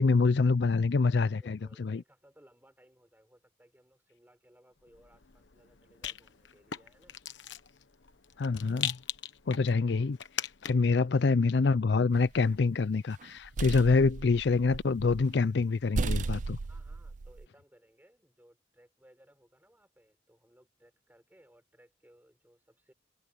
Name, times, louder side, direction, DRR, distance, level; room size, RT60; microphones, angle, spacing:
voice 1, 0.0-2.0 8.4-9.0 9.5-16.6, left 4 dB, 65° left, 0.5 m, -26 dB
voice 2, 1.4-7.2 9.6-9.9 10.7-11.1 16.6-22.9, equal, 10° right, 5.5 m, -62 dB
Rattle, 4.9-11.0, left 10 dB, 85° left, 1.2 m, -41 dB
sound 1, 12.1-12.7 13.2-15.3 15.6-15.7 15.9-17.5, right 3 dB, 45° right, 0.4 m, -35 dB
head